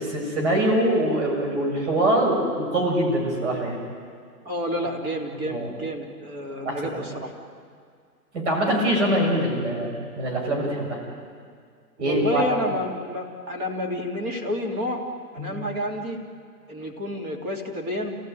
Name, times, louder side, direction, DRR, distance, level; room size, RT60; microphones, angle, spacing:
voice 1, 0.0-3.8 5.4-5.7 6.4-7.2 8.3-9.9 10.2-11.0 12.0-12.4 15.4-15.5, right 1 dB, 45° right, -1 dB, 7.2 m, -24 dB
voice 2, 4.4-7.3 12.0-15.1 15.3-16.2 16.7-18.2, left 1 dB, 20° right, 0 dB, 2.9 m, -29 dB
29.0 x 17.5 x 9.4 m, 2.1 s
hypercardioid pair, 155°, 48 cm